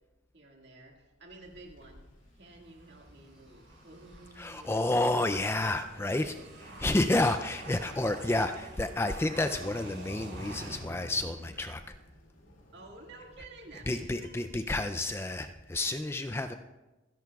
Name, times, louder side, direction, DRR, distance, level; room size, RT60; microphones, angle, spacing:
voice 1, 0.3-2.1 2.4-4.8 6.1-6.8 12.7-14.4, right 2 dB, 55° right, 1 dB, 1.9 m, -52 dB
sound 1, 1.4-15.7, equal, 75° left, 2.4 m, -59 dB
sound 2, 2.7-12.0, right 1 dB, 85° right, 5.1 m, -47 dB
sound 3, 3.2-11.6, right 1 dB, 5° right, 2.4 m, -64 dB
voice 2, 4.4-6.3 6.8-11.8 13.9-16.5, left 2 dB, 10° left, 9 dB, 0.3 m, -30 dB
26.5 x 10.5 x 2.3 m, 1.1 s
head